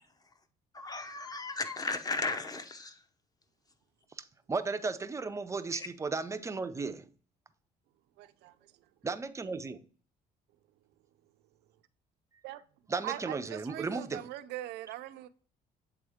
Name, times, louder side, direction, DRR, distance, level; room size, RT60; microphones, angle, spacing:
voice 1, 0.7-2.9 5.7-5.9, left 3 dB, 20° left, 0.8 m, -35 dB
voice 2, 4.5-7.0 9.0-9.8 12.9-14.3, right 4 dB, 15° right, 0.5 m, -35 dB
voice 3, 8.2-8.5 12.4-12.6 13.0-15.3, right 14 dB, 85° right, 0.5 m, -41 dB
8.0 x 3.5 x 3.5 m
cardioid pair, 110°, 17 cm